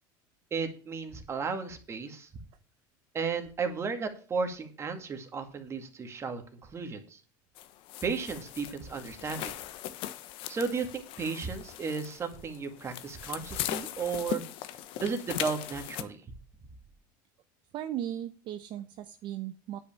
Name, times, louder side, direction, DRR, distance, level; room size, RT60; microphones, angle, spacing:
voice 1, 0.5-2.3 3.1-7.2 8.0-9.6 10.5-14.4 15.0-16.2, right 5 dB, 25° right, 6 dB, 2.1 m, -34 dB
sound 1, 7.6-16.0, left 13 dB, 60° left, 1.0 m, -39 dB
voice 2, 17.7-19.8, right 11 dB, 50° right, 9 dB, 0.8 m, -37 dB
10.0 x 5.7 x 7.2 m, 0.39 s
supercardioid pair, 130°, 10 cm